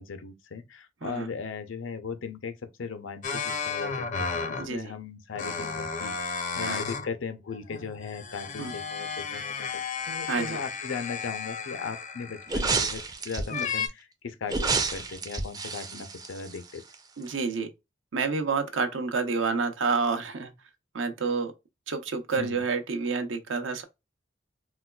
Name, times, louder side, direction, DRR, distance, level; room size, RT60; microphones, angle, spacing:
voice 1, 0.0-9.8 10.1-16.8 22.4-22.6, left 5 dB, 90° left, 0.6 m, -38 dB
sound 1, 3.2-4.8 5.3-7.1 7.5-13.0 13.5-13.9, left 5 dB, 40° left, 0.5 m, -33 dB
voice 2, 4.6-4.9 6.6-6.8 8.6-8.7 10.2-10.6 13.5-13.7 17.2-17.7 18.1-20.5 20.9-21.5 21.9-23.8, right 4 dB, 75° right, 0.7 m, -29 dB
sound 2, 12.5-13.6 14.5-16.9 17.3-17.4, right 3 dB, 20° right, 0.4 m, -29 dB
4.0 x 2.3 x 2.2 m
head